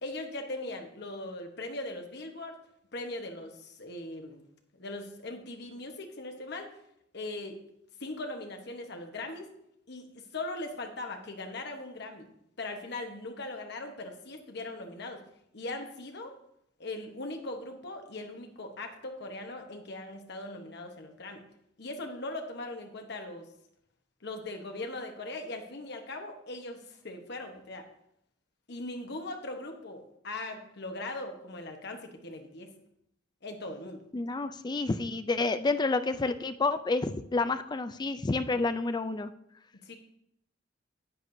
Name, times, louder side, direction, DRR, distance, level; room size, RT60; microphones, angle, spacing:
voice 1, 0.0-2.5 2.9-4.4 4.8-6.7 7.1-7.6 8.0-9.5 9.9-12.3 12.6-15.2 15.5-16.3 16.8-21.4 21.8-23.5 24.2-27.8 28.7-32.7 33.4-34.0 39.7-40.0, left 2 dB, 60° left, 4 dB, 1.1 m, -40 dB
voice 2, 34.1-39.3, left 3 dB, 20° left, 11 dB, 0.4 m, -29 dB
10.0 x 8.3 x 2.7 m, 0.77 s
head